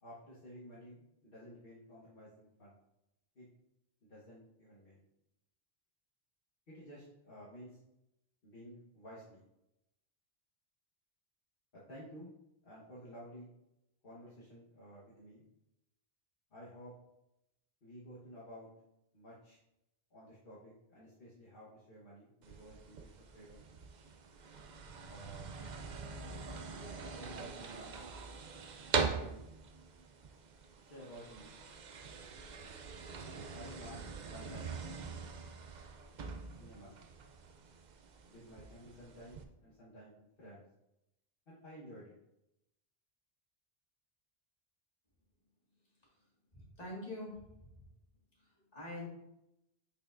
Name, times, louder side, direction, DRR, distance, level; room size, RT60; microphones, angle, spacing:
voice 1, 0.0-2.8 3.3-3.4 4.0-5.0 6.7-7.8 8.4-9.4 11.7-12.3 12.6-13.5 14.0-15.4 16.5-16.9 17.8-18.7 19.1-19.6 20.1-23.7 25.0-25.5 27.1-27.9 29.2-29.5 30.9-31.5 33.5-34.8 36.6-37.0 38.2-40.6 41.5-42.1, equal, 60° left, -8 dB, 1.5 m, -53 dB
sound 1, 22.4-39.4, right 5 dB, 55° right, 0.6 m, -43 dB
voice 2, 46.5-47.8 48.4-49.1, left 1 dB, 40° left, -5 dB, 2.1 m, -45 dB
6.7 x 5.7 x 2.5 m, 0.87 s
omnidirectional pair, 1.0 m